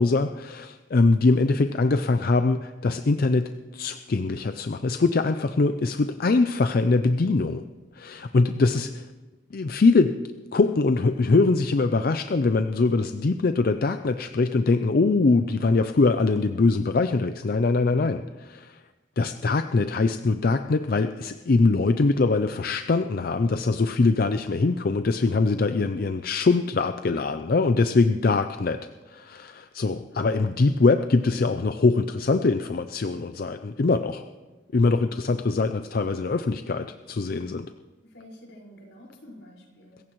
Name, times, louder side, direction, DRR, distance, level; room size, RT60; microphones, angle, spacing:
voice 1, 0.0-7.6 7.9-9.1 9.5-10.2 10.5-18.2 18.5-18.8 19.2-28.8 29.1-34.2 34.7-37.7, left 3 dB, 50° left, 9 dB, 0.5 m, -23 dB
voice 2, 17.8-18.2 30.1-30.7 31.0-31.1 34.9-35.1 38.0-40.0, left 1 dB, 80° left, -2 dB, 5.0 m, -48 dB
25.5 x 15.0 x 3.1 m, 1.2 s
head